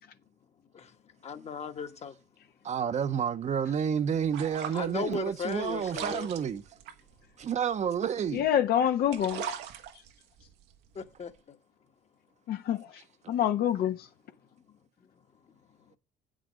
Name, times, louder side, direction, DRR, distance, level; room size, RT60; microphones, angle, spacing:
voice 1, 1.2-2.1 4.7-6.3 10.9-11.6, left 6 dB, 40° left, 1.4 m, -37 dB
voice 2, 2.6-6.6 7.4-8.4, right 8 dB, 45° right, 0.9 m, -30 dB
sound 1, 3.5-8.6 8.9-11.4, right 9 dB, 85° right, 1.3 m, -42 dB
voice 3, 8.3-9.6 12.5-13.0 13.3-14.1, left 10 dB, 70° left, 1.1 m, -27 dB
8.4 x 6.2 x 6.4 m
cardioid pair, 110°, 17 cm